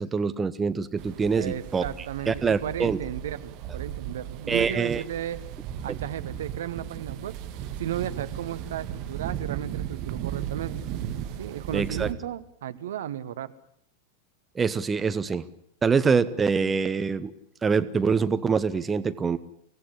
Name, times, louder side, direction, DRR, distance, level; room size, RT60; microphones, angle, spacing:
voice 1, 0.0-1.8 2.3-3.0 4.5-5.0 11.7-12.1 14.5-15.4 15.8-17.3 17.6-19.4, right 5 dB, 15° right, 12 dB, 1.0 m, -25 dB
sound 1, 1.0-12.1, right 10 dB, 45° right, 2.1 m, -36 dB
voice 2, 1.3-5.4 5.8-7.4 7.8-10.7 11.4-13.5, right 10 dB, 60° right, 13 dB, 1.1 m, -34 dB
24.5 x 17.5 x 9.8 m, 0.72 s
figure-of-eight pair, 90°, 0 cm